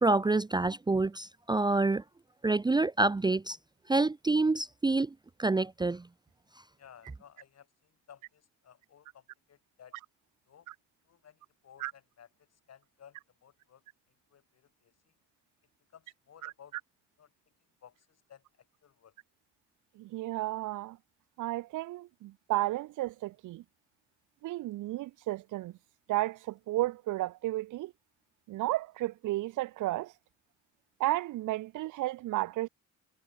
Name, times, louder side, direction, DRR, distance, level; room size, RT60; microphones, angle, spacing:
voice 1, 0.0-2.0 2.4-3.6 3.9-6.1, right 3 dB, 15° right, 0.6 m, -27 dB
voice 2, 6.8-10.0 10.5-10.7 11.1-12.3 12.7-13.8 14.3-14.9 15.9-16.7 17.2-17.3 17.8-18.4 18.8-19.1, left 8 dB, 55° left, 5.4 m, -57 dB
voice 3, 19.9-21.0 21.4-23.6 24.4-25.8 26.1-27.9 28.5-30.1 31.0-32.7, right 17 dB, 90° right, 1.3 m, -33 dB
cardioid pair, 90°, 30 cm